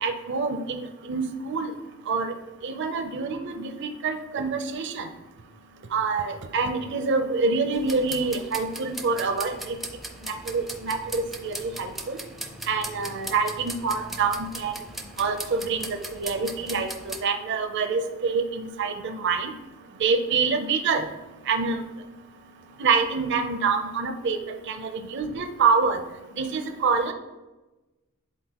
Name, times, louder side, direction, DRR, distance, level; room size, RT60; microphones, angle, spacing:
voice 1, 0.0-0.8 1.1-1.7 2.1-2.3 2.6-5.1 5.9-9.8 10.3-12.2 12.7-14.8 15.2-19.5 20.0-21.1 21.5-21.8 22.8-26.0 26.4-27.1, right 4 dB, 55° right, 7 dB, 0.5 m, -26 dB
sound 1, 7.7-17.2, right 1 dB, ahead, 0.4 m, -39 dB
9.9 x 3.9 x 2.9 m, 1.1 s
head